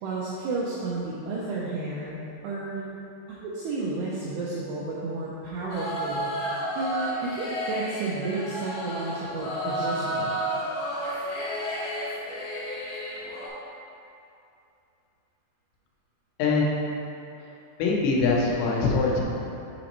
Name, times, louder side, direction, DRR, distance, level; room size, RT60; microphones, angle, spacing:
voice 1, 0.0-2.9 3.3-6.3 6.8-10.4, right 3 dB, 85° right, -6 dB, 2.3 m, -32 dB
sound 1, 5.7-13.5, right 1 dB, 70° left, 2.8 m, -31 dB
voice 2, 16.4-16.9 17.8-19.2, left 3 dB, 85° left, -3 dB, 3.2 m, -23 dB
7.3 x 5.0 x 3.0 m, 2.7 s
omnidirectional pair, 5.3 m